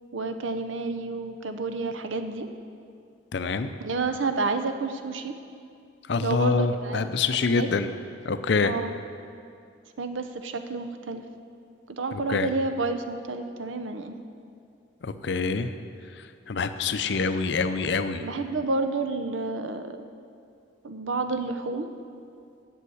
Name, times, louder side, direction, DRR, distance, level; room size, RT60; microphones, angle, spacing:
voice 1, 0.1-2.5 3.8-5.4 6.2-7.0 7.3-7.7 8.6-8.9 10.0-11.2 12.0-14.1 18.2-20.0 20.8-21.9, right 3 dB, 85° right, 8 dB, 0.7 m, -30 dB
voice 2, 3.3-3.7 6.1-7.9 8.2-8.7 12.3-12.5 15.0-15.7 16.5-18.2, left 4 dB, 60° left, 10 dB, 0.5 m, -25 dB
8.3 x 7.2 x 7.8 m, 2.4 s
head